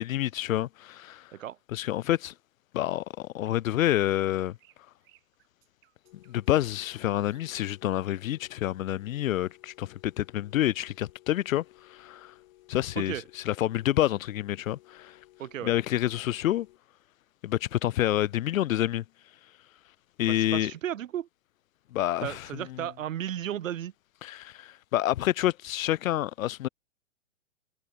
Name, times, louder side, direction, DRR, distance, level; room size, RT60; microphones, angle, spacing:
voice 1, 0.0-1.3 1.7-2.3 2.7-4.6 6.3-12.3 12.7-15.2 15.6-16.7 17.4-19.0 20.2-20.7 21.9-22.9 24.2-26.7, left 13 dB, 80° left, 0.5 m, -28 dB
sound 1, 3.2-7.7 9.1-9.2, right 19 dB, 30° right, 7.2 m, -65 dB
sound 2, 6.0-16.8, left 17 dB, 50° left, 3.8 m, -58 dB
voice 2, 15.4-15.7 20.3-21.3 22.2-23.9, right 11 dB, 75° right, 0.9 m, -34 dB
hypercardioid pair, 130°, 40 cm